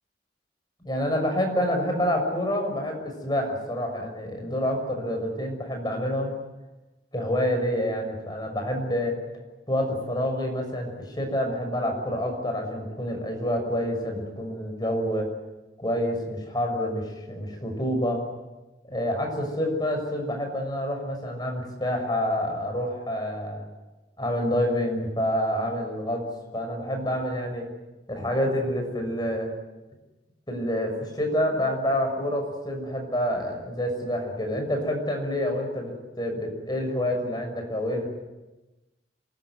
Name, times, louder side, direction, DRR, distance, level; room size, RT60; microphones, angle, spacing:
voice 1, 0.8-6.3 7.1-9.2 9.7-15.3 15.8-18.2 18.8-23.6 24.2-26.2 26.5-27.7 28.1-29.5 30.5-38.1, equal, 25° left, 3 dB, 6.4 m, -27 dB
27.0 x 20.0 x 9.6 m, 1.1 s
head